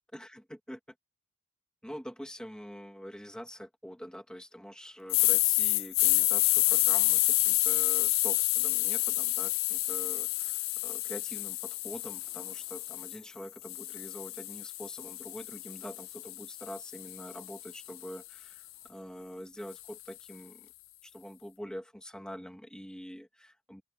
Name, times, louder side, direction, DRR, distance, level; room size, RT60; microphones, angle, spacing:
voice 1, 0.1-0.8 1.8-20.7 21.0-23.8, equal, 5° left, 2.2 m, -45 dB
sound 1, 5.1-13.2 13.7-17.9, left 19 dB, 75° left, 0.5 m, -29 dB
sound 2, 10.0-19.0, right 3 dB, 25° right, 4.4 m, -70 dB
open air
head